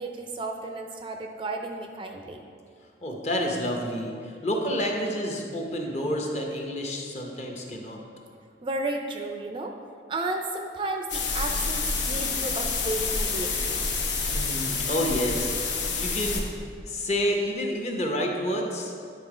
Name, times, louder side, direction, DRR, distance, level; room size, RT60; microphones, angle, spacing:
voice 1, 0.0-2.4 8.6-9.7 10.1-13.8, right 2 dB, 30° right, 3 dB, 0.4 m, -33 dB
voice 2, 3.0-8.0 14.2-15.7 16.0-16.4 16.8-18.9, equal, 40° left, 1 dB, 0.9 m, -29 dB
sound 1, 11.1-16.4, left 4 dB, 85° left, 0.9 m, -28 dB
9.8 x 3.6 x 4.9 m, 2.3 s
head